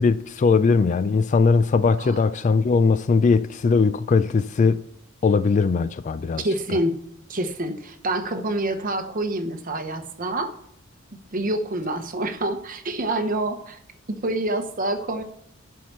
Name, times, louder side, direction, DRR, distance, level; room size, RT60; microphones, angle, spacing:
voice 1, 0.0-4.8 5.2-6.4, left 4 dB, 35° left, 0.3 m, -20 dB
voice 2, 6.4-7.0 7.3-10.5 11.3-13.8 14.1-15.2, right 1 dB, 40° right, 1.0 m, -27 dB
11.5 x 4.7 x 5.5 m
head